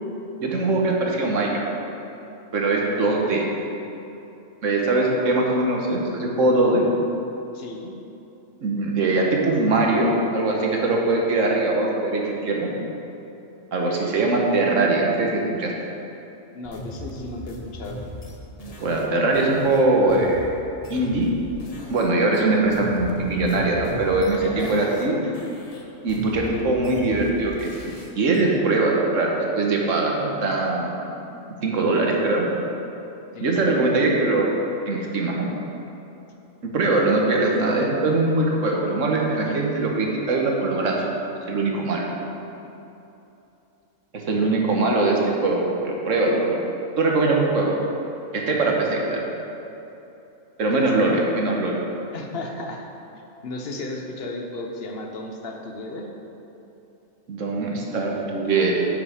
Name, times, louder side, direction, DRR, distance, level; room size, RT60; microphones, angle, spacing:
voice 1, 0.4-1.6 2.5-3.5 4.6-6.8 8.6-12.7 13.7-15.7 18.8-20.4 20.9-21.3 21.9-25.2 26.0-31.1 31.6-32.5 33.4-34.5 34.9-35.5 36.7-41.0 41.5-42.1 44.1-46.6 47.0-47.8 48.3-49.3 50.6-51.8 57.3-58.7, right 2 dB, 75° right, -1 dB, 1.5 m, -22 dB
voice 2, 7.5-7.9 12.5-12.9 16.5-18.0 24.4-25.0 25.2-25.3 33.3-33.9 44.5-44.9 50.8-51.2 52.1-52.8 53.1-56.1, left 2 dB, 55° left, 2 dB, 1.1 m, -35 dB
sound 1, 16.6-22.1 22.3-25.1 25.3-28.4, left 1 dB, 35° left, 0.8 m, -38 dB
9.4 x 5.7 x 5.0 m, 3.0 s
omnidirectional pair, 1.3 m